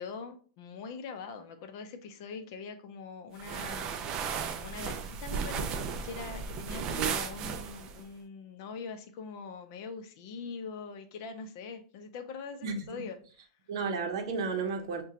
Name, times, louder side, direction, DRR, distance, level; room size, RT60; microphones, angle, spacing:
voice 1, 0.0-13.2, left 5 dB, 45° left, 0.5 m, -43 dB
sound 1, 3.4-8.0, right 6 dB, 25° right, 0.3 m, -35 dB
voice 2, 12.6-13.0 13.7-15.0, right 5 dB, 60° right, 0.7 m, -33 dB
4.8 x 2.2 x 2.8 m
supercardioid pair, 160°, 3 cm